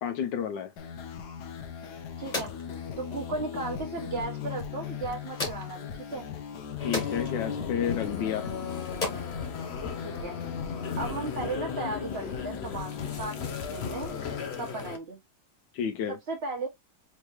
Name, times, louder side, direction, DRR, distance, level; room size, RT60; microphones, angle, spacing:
voice 1, 0.0-0.7 6.8-8.5 15.7-16.2, left 8 dB, 90° left, 1.4 m, -30 dB
sound 1, 0.8-14.5, left 7 dB, 70° left, 1.3 m, -38 dB
sound 2, 1.5-10.5, left 2 dB, 25° left, 1.8 m, -41 dB
voice 2, 2.2-2.5 3.0-6.3 10.0-10.4 11.0-14.2 14.6-15.2 16.1-16.7, right 3 dB, 35° right, 2.0 m, -36 dB
sound 3, 6.8-15.0, left 6 dB, 50° left, 0.9 m, -37 dB
4.5 x 3.4 x 3.0 m
omnidirectional pair, 1.9 m